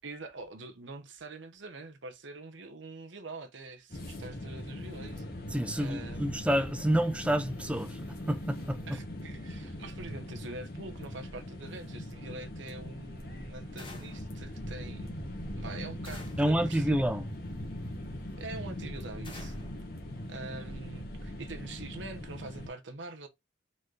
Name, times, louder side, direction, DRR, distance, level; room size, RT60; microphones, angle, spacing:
voice 1, 0.0-5.2 5.8-6.3 8.9-15.2 15.6-17.0 18.4-19.5 20.3-23.3, right 3 dB, 70° right, 1.0 m, -44 dB
sound 1, 3.9-22.7, left 1 dB, 50° left, 1.5 m, -41 dB
voice 2, 5.5-9.0 16.4-17.2, right 1 dB, 5° right, 0.5 m, -29 dB
sound 2, 13.8-14.3 16.0-16.6 19.2-19.8, left 3 dB, 25° left, 1.4 m, -49 dB
4.2 x 3.9 x 3.2 m
head